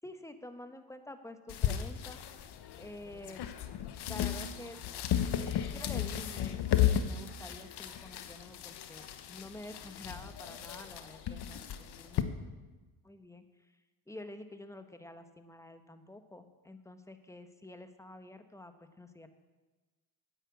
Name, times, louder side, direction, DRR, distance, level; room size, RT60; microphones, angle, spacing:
voice 1, 0.0-2.2 2.8-3.4 4.1-4.8 5.7-12.2 13.0-13.4 14.1-19.3, left 1 dB, 5° left, 8 dB, 1.3 m, -49 dB
sound 1, 1.5-12.2, left 10 dB, 65° left, 1.1 m, -34 dB
10.0 x 9.0 x 8.5 m, 1.2 s
supercardioid pair, 75°, 42 cm